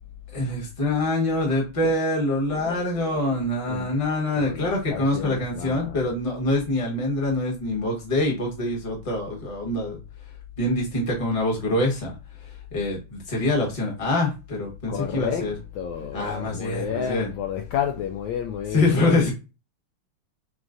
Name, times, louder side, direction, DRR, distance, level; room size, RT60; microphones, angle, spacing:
voice 1, 0.3-10.0 10.6-12.2 12.7-15.5 16.1-17.3 18.7-19.3, left 1 dB, 20° left, 1.0 m, -25 dB
voice 2, 2.3-3.4 3.7-3.9 4.4-6.1 14.9-19.3, left 8 dB, 75° left, 1.2 m, -31 dB
6.0 x 2.4 x 2.5 m
omnidirectional pair, 2.4 m